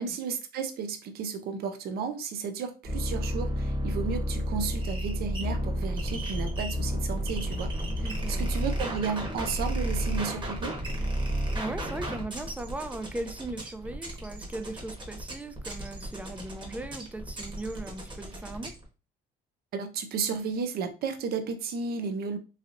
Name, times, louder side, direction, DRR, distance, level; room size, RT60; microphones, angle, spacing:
voice 1, 0.0-10.8 19.7-22.4, right 5 dB, 65° right, 0.6 m, -33 dB
sound 1, 2.8-18.8, equal, 25° right, 1.2 m, -32 dB
voice 2, 8.0-8.5 11.5-18.7, right 2 dB, 10° right, 0.4 m, -38 dB
3.2 x 2.7 x 2.5 m
cardioid pair, 110°, 17 cm